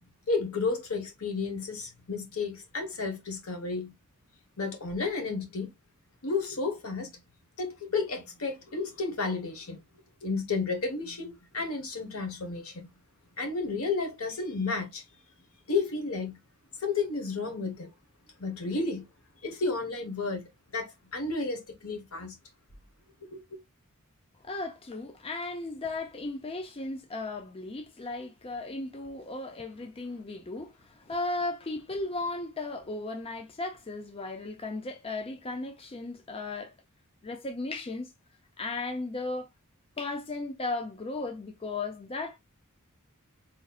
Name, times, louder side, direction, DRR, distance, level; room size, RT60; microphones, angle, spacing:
voice 1, 0.3-3.9 4.6-5.7 6.2-7.1 7.6-9.8 10.2-12.9 13.4-15.0 15.7-16.4 16.8-17.9 18.4-19.1 19.4-20.5 20.7-22.4 23.2-23.6, left 4 dB, 70° left, 1.3 m, -32 dB
voice 2, 24.4-36.8 37.2-38.1 38.6-39.5 40.0-42.4, left 2 dB, 25° left, 0.5 m, -36 dB
4.2 x 3.1 x 2.3 m
head